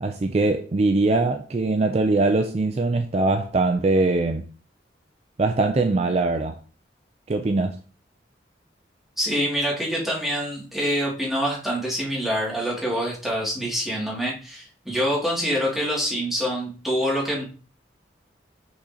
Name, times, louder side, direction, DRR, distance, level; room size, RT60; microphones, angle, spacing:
voice 1, 0.0-4.4 5.4-6.6 7.3-7.8, right 3 dB, 35° right, 0.4 m, -22 dB
voice 2, 9.2-17.5, equal, ahead, 2.3 m, -26 dB
6.3 x 5.7 x 2.8 m
head